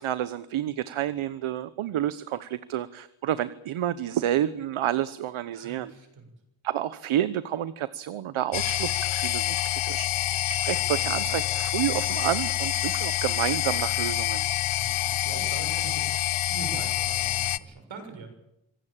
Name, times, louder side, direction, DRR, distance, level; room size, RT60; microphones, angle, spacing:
voice 1, 0.0-5.9 6.6-10.1 10.5-14.4, right 12 dB, 85° right, 14 dB, 1.1 m, -29 dB
voice 2, 5.5-6.3 14.7-18.3, right 4 dB, 70° right, 6 dB, 7.1 m, -42 dB
sound 1, 8.5-17.6, left 14 dB, 85° left, 1.0 m, -27 dB
25.5 x 17.0 x 8.9 m, 0.82 s
cardioid pair, 105°, 48 cm